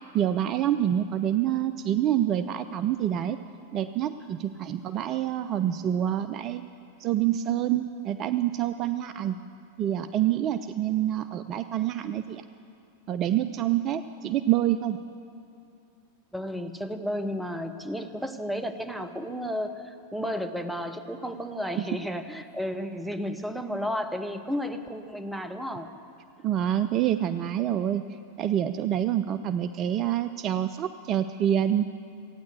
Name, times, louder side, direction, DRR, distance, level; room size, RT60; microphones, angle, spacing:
voice 1, 0.1-3.4 3.7-6.7 7.0-9.4 9.8-12.4 13.1-15.0 21.8-21.9 26.4-28.0 28.4-31.9, right 11 dB, 35° right, 11 dB, 0.3 m, -27 dB
voice 2, 16.3-25.9, equal, 5° right, 7 dB, 0.8 m, -33 dB
15.0 x 9.4 x 8.1 m, 2.6 s
figure-of-eight pair, 90°, 0 cm